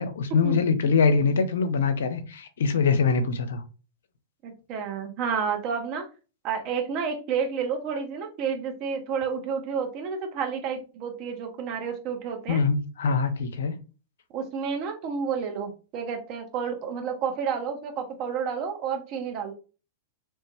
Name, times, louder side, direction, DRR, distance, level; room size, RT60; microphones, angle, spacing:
voice 1, 0.0-3.6 12.5-13.7, left 5 dB, 65° left, 0.5 m, -23 dB
voice 2, 4.4-6.1 6.4-12.6 14.3-19.5, right 6 dB, 40° right, 0.9 m, -30 dB
3.2 x 2.1 x 3.1 m
figure-of-eight pair, 95°, 0 cm